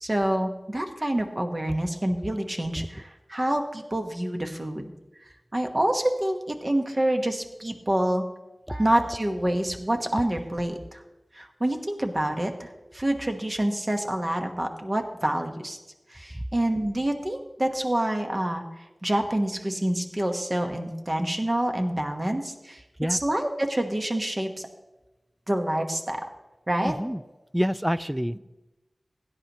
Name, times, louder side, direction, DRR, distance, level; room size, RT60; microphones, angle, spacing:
voice 1, 0.0-4.9 5.5-8.2 8.7-11.0 11.3-15.8 16.1-22.8 23.1-24.7 25.5-26.2 26.7-26.9, right 1 dB, 35° right, 4 dB, 1.3 m, -27 dB
voice 2, 26.8-27.2 27.5-28.4, equal, 5° right, 17 dB, 0.3 m, -27 dB
16.5 x 10.0 x 3.0 m, 1.1 s
wide cardioid pair, 55°, 0 cm